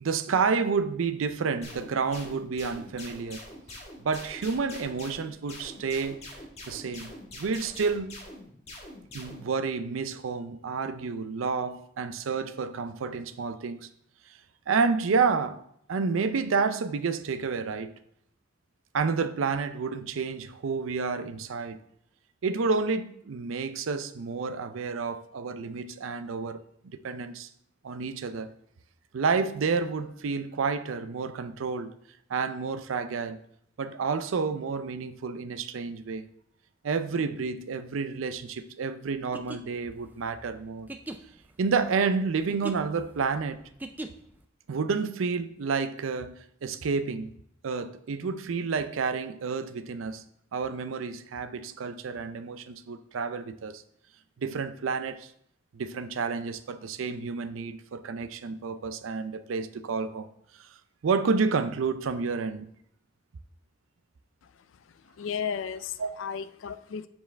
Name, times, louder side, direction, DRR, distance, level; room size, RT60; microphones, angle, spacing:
voice 1, 0.0-3.4 4.0-6.2 6.7-8.2 9.1-13.9 14.7-15.6 15.9-17.9 18.9-21.8 22.4-27.5 27.8-28.5 29.1-32.0 32.3-33.4 33.8-36.3 36.8-40.9 41.6-43.6 44.7-47.3 47.6-50.2 50.5-53.8 54.4-55.3 55.7-60.3 60.6-60.7 61.0-62.7 66.0-66.1, right 5 dB, 85° right, 0.5 m, -30 dB
sound 1, 1.6-9.5, left 1 dB, 35° left, 1.4 m, -44 dB
sound 2, 39.2-44.4, right 2 dB, 10° right, 0.3 m, -41 dB
voice 2, 64.4-67.1, left 7 dB, 75° left, 0.4 m, -35 dB
7.5 x 4.7 x 3.3 m
head